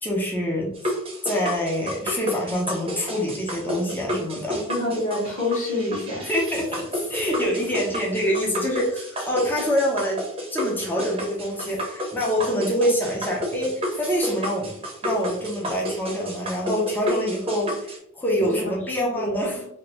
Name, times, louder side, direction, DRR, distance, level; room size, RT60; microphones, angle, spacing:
voice 1, 0.0-0.7 1.2-4.6 6.2-10.2 10.5-14.7 15.0-19.7, equal, 10° left, -3 dB, 0.5 m, -26 dB
sound 1, 0.7-18.0, equal, 25° right, 0.7 m, -31 dB
voice 2, 4.7-6.3 18.4-18.7 19.0-19.5, left 1 dB, 35° left, -3 dB, 1.3 m, -27 dB
2.8 x 2.6 x 3.0 m, 0.73 s
head